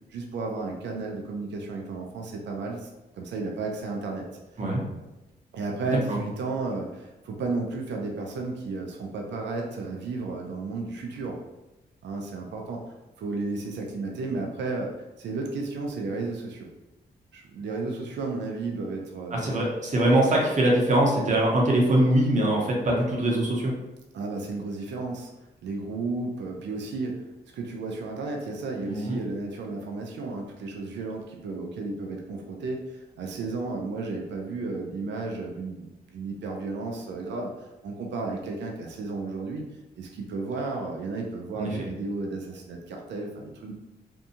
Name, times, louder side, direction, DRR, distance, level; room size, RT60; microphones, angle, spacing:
voice 1, 0.1-2.9 3.2-4.3 5.5-11.4 12.0-12.8 13.2-16.7 17.3-19.5 24.1-25.3 25.6-27.3 27.5-39.7 40.0-43.7, right 3 dB, 75° right, 1 dB, 0.4 m, -33 dB
voice 2, 5.8-6.2 19.3-23.7 28.8-29.2 41.5-41.9, right 1 dB, 40° right, -2 dB, 0.8 m, -23 dB
2.6 x 2.3 x 2.7 m, 1.0 s
cardioid pair, 80°, 18 cm